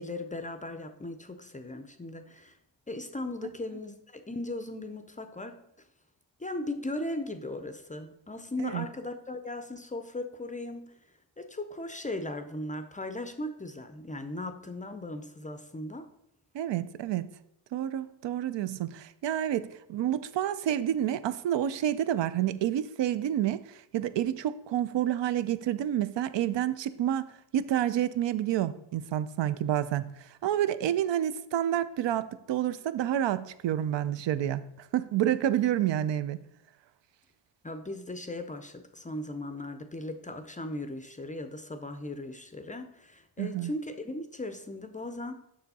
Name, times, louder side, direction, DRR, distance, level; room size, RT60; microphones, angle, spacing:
voice 1, 0.0-2.5 2.9-5.5 6.4-10.9 11.4-16.1 37.6-45.3, left 2 dB, 20° left, 0.4 m, -38 dB
voice 2, 16.5-17.3 17.7-34.7 34.9-36.4 43.4-43.7, right 11 dB, 75° right, 0.5 m, -29 dB
6.9 x 6.1 x 4.1 m
wide cardioid pair, 135°, 44 cm